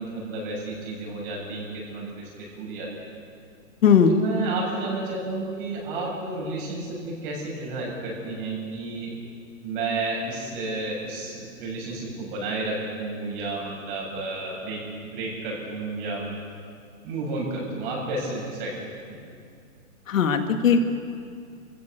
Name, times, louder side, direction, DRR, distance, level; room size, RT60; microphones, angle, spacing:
voice 1, 0.0-3.1 4.1-9.1 9.6-16.3 17.0-19.2, right 3 dB, 35° right, -3 dB, 7.6 m, -32 dB
voice 2, 20.1-20.8, left 7 dB, 65° left, 6 dB, 2.3 m, -18 dB
27.5 x 15.5 x 6.9 m, 2.3 s
hypercardioid pair, 165°, 42 cm